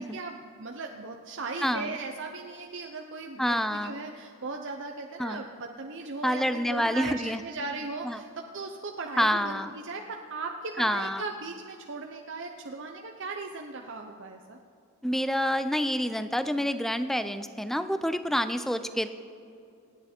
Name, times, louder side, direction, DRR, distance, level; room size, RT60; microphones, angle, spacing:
voice 1, 0.0-14.6, right 3 dB, 55° right, 2 dB, 0.8 m, -38 dB
voice 2, 1.6-1.9 3.4-4.0 5.2-5.4 6.2-7.4 8.0-8.2 9.2-9.7 10.8-11.2 15.0-19.1, equal, ahead, 11 dB, 0.5 m, -28 dB
28.0 x 9.6 x 4.4 m, 2.6 s
head